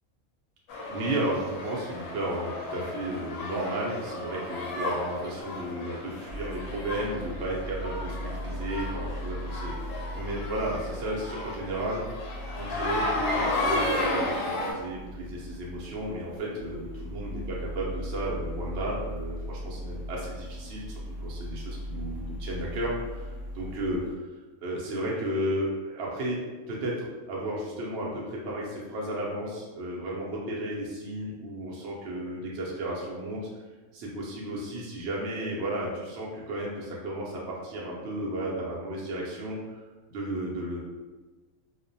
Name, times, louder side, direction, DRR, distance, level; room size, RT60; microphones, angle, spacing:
sound 1, 0.7-14.7, left 2 dB, 70° left, 0.9 m, -34 dB
voice 1, 0.9-12.2 12.5-24.0 24.6-26.4 26.7-33.5 33.9-40.8, right 1 dB, 65° right, -4 dB, 0.7 m, -33 dB
sound 2, 6.3-24.2, equal, 80° right, 1.0 m, -38 dB
2.4 x 2.1 x 2.6 m, 1.2 s
omnidirectional pair, 1.5 m